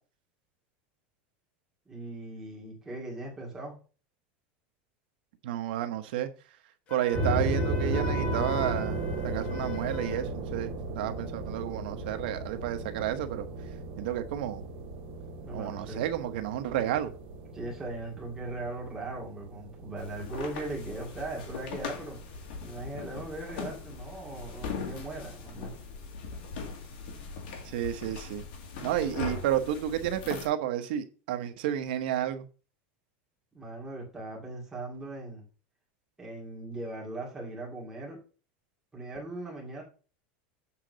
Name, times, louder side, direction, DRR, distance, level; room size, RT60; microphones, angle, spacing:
voice 1, 1.9-3.8 15.4-16.0 17.5-22.2 22.6-25.7 33.5-35.5 36.2-38.2 38.9-39.8, right 2 dB, 10° right, 2.1 m, -39 dB
voice 2, 5.4-6.3 6.9-13.5 14.0-14.6 15.5-17.1 27.6-28.4 28.8-32.4, right 11 dB, 70° right, 1.0 m, -31 dB
Wind instrument woodwind instrument, 6.9-10.3, left 5 dB, 25° left, 1.0 m, -40 dB
sound 1, 7.1-22.3, right 1 dB, 40° right, 2.3 m, -35 dB
sound 2, 20.0-30.5, left 5 dB, 65° left, 1.9 m, -40 dB
7.4 x 3.8 x 6.1 m
supercardioid pair, 175°, 5 cm